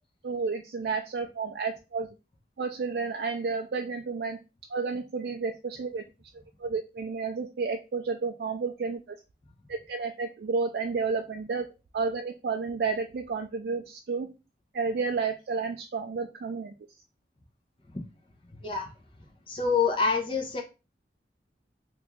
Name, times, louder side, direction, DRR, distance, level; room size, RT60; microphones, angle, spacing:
voice 1, 0.2-2.1 2.6-4.4 4.7-6.0 6.6-9.2 9.7-11.7 11.9-14.3 14.7-16.7, right 4 dB, 65° right, 4 dB, 0.3 m, -31 dB
voice 2, 19.5-20.6, left 5 dB, 30° left, 1 dB, 0.7 m, -26 dB
3.0 x 2.5 x 3.5 m, 0.29 s
head